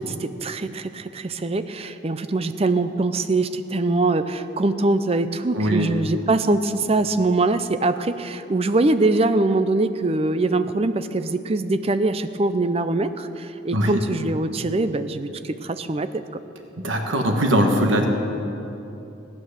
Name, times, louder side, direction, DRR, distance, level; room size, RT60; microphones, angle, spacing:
voice 1, 0.0-16.1, right 2 dB, 30° right, 11 dB, 0.5 m, -23 dB
voice 2, 5.5-5.9 13.7-14.0 16.8-18.1, equal, 80° right, 3 dB, 1.4 m, -20 dB
16.5 x 9.5 x 6.6 m, 2.9 s
head